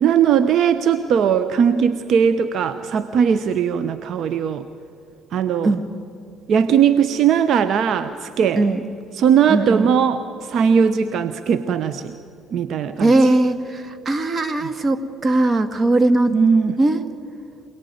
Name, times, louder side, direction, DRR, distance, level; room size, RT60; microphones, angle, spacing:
voice 1, 0.0-4.6 5.3-5.7 6.5-8.7 9.1-12.2 12.5-13.3 16.3-16.8, right 7 dB, 60° right, 11 dB, 0.9 m, -19 dB
voice 2, 8.6-8.9 9.5-9.9 13.0-16.4 16.8-17.0, right 2 dB, 35° right, 10 dB, 2.0 m, -19 dB
27.0 x 19.0 x 9.4 m, 2.6 s
hypercardioid pair, 60°, 0 cm